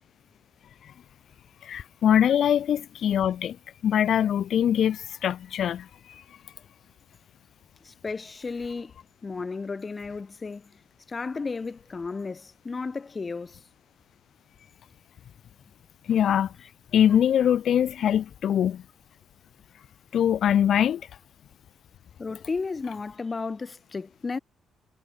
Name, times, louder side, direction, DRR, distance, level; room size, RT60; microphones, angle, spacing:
voice 1, 1.6-3.6 3.8-5.9 16.1-16.5 16.9-18.8 20.1-21.0, left 9 dB, 65° left, 2.4 m, -22 dB
voice 2, 7.8-9.0 9.2-10.8 11.1-13.6 22.2-24.4, left 4 dB, 30° left, 1.8 m, -33 dB
cardioid pair, 90°, 0 cm